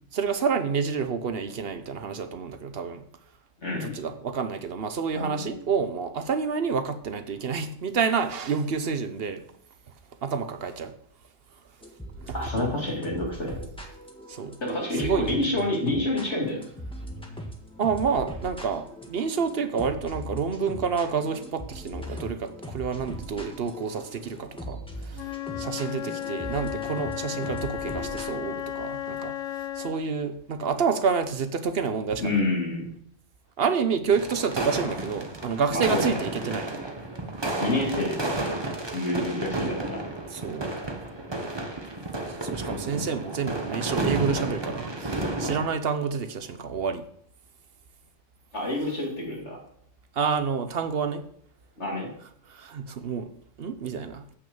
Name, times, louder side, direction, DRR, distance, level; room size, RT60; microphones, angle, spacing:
voice 1, 0.1-3.0 3.7-9.4 10.2-10.9 12.3-12.4 14.3-14.6 15.0-15.4 17.8-25.3 25.6-29.4 29.8-32.4 33.6-36.7 40.3-40.7 42.3-47.0 50.1-51.2 52.5-53.3 53.6-54.2, right 6 dB, 55° right, 0.9 m, -28 dB
voice 2, 3.6-4.0 5.1-5.6 12.3-13.6 14.6-16.6 32.2-32.8 35.7-36.2 37.6-40.0 42.7-43.0 48.5-49.6 51.8-52.1, left 2 dB, 60° left, 3.1 m, -28 dB
sound 1, 11.8-28.4, equal, 5° left, 1.4 m, -40 dB
Wind instrument woodwind instrument, 25.1-30.1, left 12 dB, 85° left, 1.0 m, -34 dB
sound 2, 34.1-45.7, right 2 dB, 20° right, 1.0 m, -32 dB
8.0 x 6.3 x 6.9 m
omnidirectional pair, 1.3 m